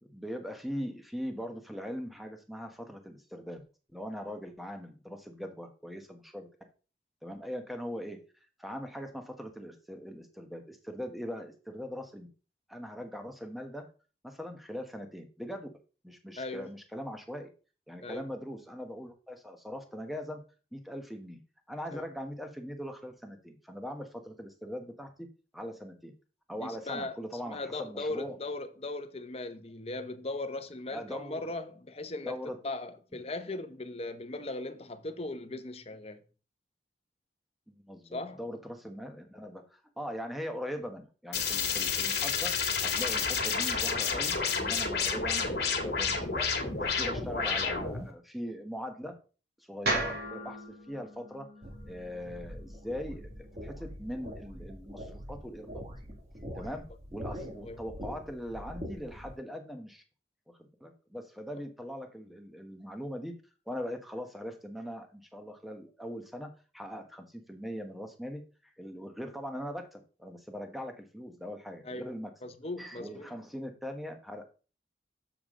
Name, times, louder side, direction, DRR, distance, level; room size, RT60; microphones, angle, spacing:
voice 1, 0.0-3.6 3.9-6.5 7.2-8.2 8.6-12.3 12.7-13.8 14.2-15.7 16.0-17.5 17.9-20.4 20.7-21.4 21.7-25.3 25.5-26.1 26.5-28.4 30.9-31.4 32.2-32.6 37.7-42.5 42.8-46.5 46.8-49.1 49.6-50.6 50.9-51.5 51.8-53.2 53.6-55.8 56.5-56.9 57.1-60.0 60.5-63.3 63.7-72.3 72.8-74.5, equal, ahead, 1.3 m, -41 dB
voice 2, 16.4-16.7 18.0-18.2 21.9-22.0 26.6-27.2 27.5-32.4 32.6-36.2 38.1-38.4 57.6-57.8 71.8-72.1 72.4-73.4, left 2 dB, 35° left, 0.9 m, -38 dB
sound 1, 41.3-48.1, left 5 dB, 65° left, 2.0 m, -30 dB
sound 2, 49.8-54.0, right 1 dB, 60° right, 2.9 m, -37 dB
sound 3, 51.6-59.3, equal, 40° right, 2.0 m, -44 dB
7.2 x 6.9 x 3.7 m
head